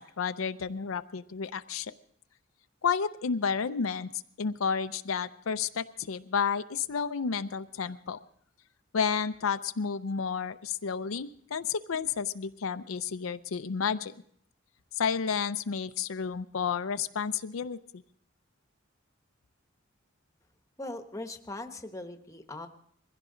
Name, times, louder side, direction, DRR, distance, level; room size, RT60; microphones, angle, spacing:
voice 1, 0.0-1.9 2.8-4.1 4.4-8.2 8.9-14.1 15.0-17.8, left 6 dB, 90° left, 11 dB, 0.6 m, -31 dB
voice 2, 20.8-22.7, left 2 dB, 15° left, 7 dB, 1.0 m, -40 dB
21.5 x 16.0 x 3.8 m, 0.62 s
head